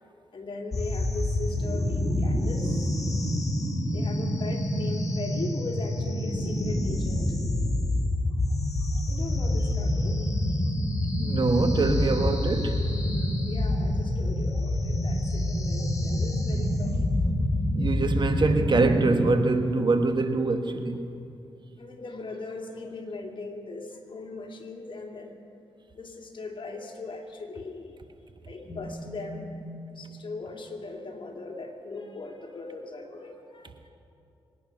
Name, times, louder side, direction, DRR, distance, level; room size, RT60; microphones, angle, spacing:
voice 1, 0.3-3.0 3.9-7.3 9.1-10.3 13.4-17.1 21.8-25.4 26.0-28.0 28.5-33.9, left 3 dB, 55° left, 2 dB, 2.5 m, -39 dB
sound 1, 0.7-19.3, left 1 dB, 35° left, 3.1 m, -27 dB
voice 2, 11.2-12.8 17.7-21.1, right 3 dB, 50° right, 7 dB, 1.4 m, -24 dB
24.5 x 10.0 x 5.9 m, 2.6 s
cardioid pair, 55°, 10 cm